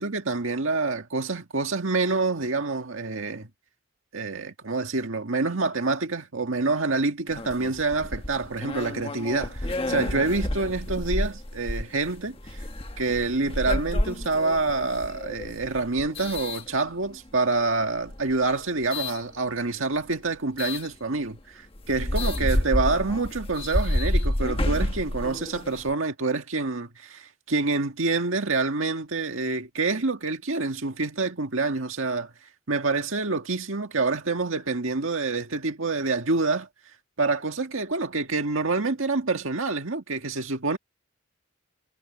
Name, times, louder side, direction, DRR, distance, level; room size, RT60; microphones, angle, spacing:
voice 1, 0.0-3.5 4.1-12.7 13.0-32.3 32.7-36.7 37.2-40.8, right 3 dB, 75° right, 1.8 m, -27 dB
sound 1, 7.3-17.3 18.0-19.2 20.6-20.9 21.4-21.5 21.8-25.9, left 1 dB, 25° left, 1.3 m, -30 dB
head